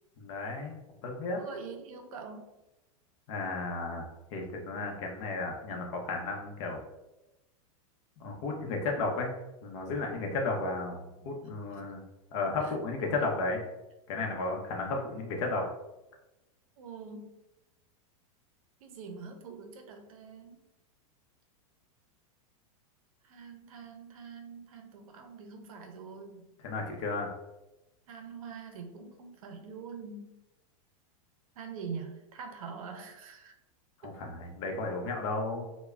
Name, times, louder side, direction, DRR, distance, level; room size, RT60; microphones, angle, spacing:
voice 1, 0.2-0.7 1.0-1.4 3.3-4.0 4.3-6.8 8.2-9.3 9.6-12.0 12.3-13.6 14.1-15.7 26.6-27.3 34.2-35.7, left 3 dB, 55° left, 2 dB, 0.7 m, -33 dB
voice 2, 1.4-2.5 11.2-11.3 11.7-11.8 12.6-12.8 16.8-17.3 18.8-20.6 23.2-26.5 28.1-30.4 31.6-33.5 34.0-34.1, right 5 dB, 75° right, 5 dB, 0.5 m, -44 dB
3.1 x 2.1 x 2.3 m, 0.96 s
supercardioid pair, 140°, 18 cm